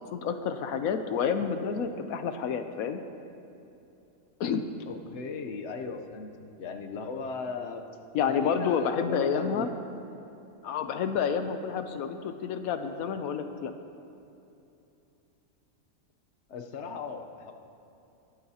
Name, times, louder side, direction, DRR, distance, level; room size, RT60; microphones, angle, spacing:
voice 1, 0.0-3.0 4.4-4.6 8.1-9.7 10.6-13.7, left 7 dB, 90° left, 8 dB, 1.2 m, -29 dB
voice 2, 4.9-6.3 6.6-7.8 8.2-9.7 16.5-17.5, left 4 dB, 60° left, 4 dB, 1.1 m, -37 dB
21.5 x 12.5 x 2.8 m, 2.9 s
omnidirectional pair, 1.4 m